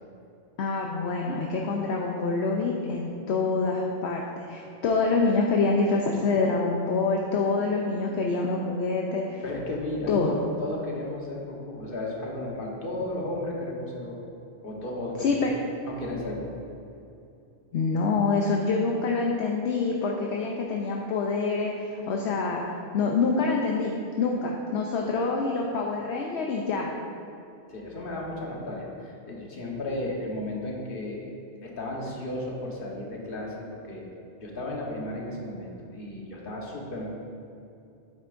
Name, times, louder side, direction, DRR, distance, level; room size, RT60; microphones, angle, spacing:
voice 1, 0.6-9.4 10.1-10.4 15.2-15.5 17.7-26.9, left 4 dB, 70° left, 0 dB, 0.9 m, -26 dB
voice 2, 9.4-14.2 14.6-15.1 15.8-16.5 27.7-31.3 31.6-34.0 34.4-37.1, left 1 dB, 50° left, -2 dB, 1.3 m, -34 dB
9.4 x 8.0 x 2.5 m, 2.7 s
omnidirectional pair, 1.2 m